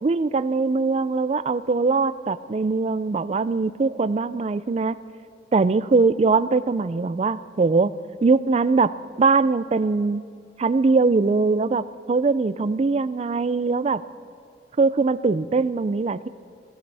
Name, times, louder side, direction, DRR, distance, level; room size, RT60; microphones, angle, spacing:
voice 1, 0.0-5.0 5.5-7.9 8.2-10.2 10.6-14.0 14.8-16.3, right 4 dB, 35° right, 15 dB, 0.3 m, -21 dB
22.5 x 16.5 x 3.4 m, 2.3 s
head